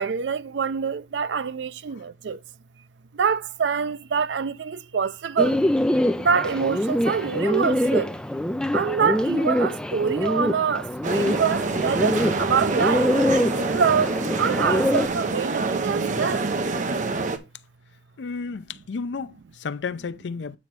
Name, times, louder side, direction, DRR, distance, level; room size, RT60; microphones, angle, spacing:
voice 1, 0.0-2.4 3.1-5.6 6.2-8.2 8.7-13.1 13.7-16.5, right 6 dB, 75° right, 0.4 m, -25 dB
Bird, 5.4-15.1, left 1 dB, 5° left, 0.5 m, -24 dB
sound 1, 11.0-17.4, right 3 dB, 45° right, 0.8 m, -26 dB
voice 2, 18.2-20.6, left 5 dB, 80° left, 0.5 m, -32 dB
8.4 x 3.1 x 5.9 m
head